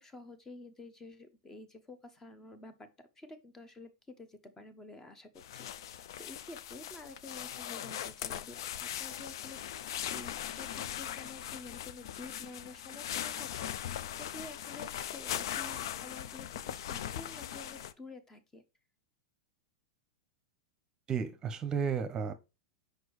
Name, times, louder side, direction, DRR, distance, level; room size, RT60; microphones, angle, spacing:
voice 1, 0.0-18.6, left 2 dB, 15° left, 1.0 m, -50 dB
sound 1, 5.4-17.9, left 11 dB, 70° left, 0.4 m, -40 dB
voice 2, 21.1-22.3, right 6 dB, 30° right, 0.8 m, -33 dB
6.0 x 5.1 x 3.1 m
hypercardioid pair, 105°, 3 cm